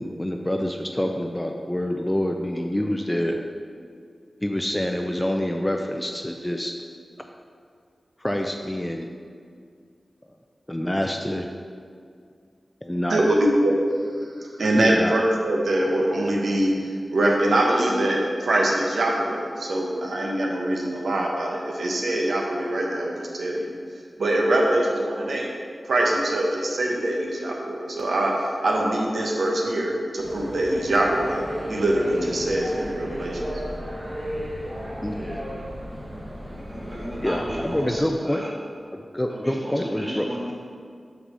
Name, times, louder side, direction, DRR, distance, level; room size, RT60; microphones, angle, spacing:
voice 1, 0.0-3.4 4.4-6.7 8.2-9.1 10.7-11.5 12.8-13.2 14.8-15.1 35.0-35.4 37.2-38.4 38.9-40.3, left 1 dB, 10° left, 3 dB, 0.4 m, -26 dB
voice 2, 13.1-13.7 14.6-16.7 17.1-23.7 24.2-25.5 25.9-28.3 28.6-31.4 31.7-33.4, right 1 dB, 90° right, -2 dB, 1.0 m, -23 dB
sound 1, 30.2-38.0, equal, 35° right, 1.6 m, -33 dB
voice 3, 36.6-38.5 39.3-40.5, equal, 15° right, -6 dB, 1.7 m, -35 dB
5.8 x 4.1 x 6.2 m, 2.2 s
wide cardioid pair, 105°, 0 cm